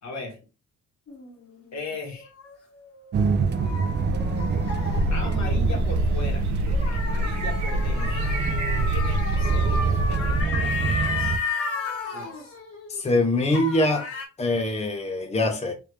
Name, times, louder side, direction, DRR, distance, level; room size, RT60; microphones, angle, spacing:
voice 1, 0.0-0.4 1.7-2.3 5.1-6.4 6.9-8.3 8.8-11.4 12.1-12.5, left 3 dB, 65° left, 1.3 m, -38 dB
sound 1, 1.1-5.8 6.7-13.2 13.5-14.3, left 4 dB, 50° left, 1.1 m, -33 dB
sound 2, 3.1-11.4, right 5 dB, 35° right, 0.4 m, -26 dB
sound 3, 3.7-10.4, left 1 dB, 70° right, 0.8 m, -28 dB
voice 2, 12.9-14.1 14.4-15.7, left 2 dB, 20° left, 0.7 m, -23 dB
3.3 x 2.6 x 3.2 m
cardioid pair, 90°, 30 cm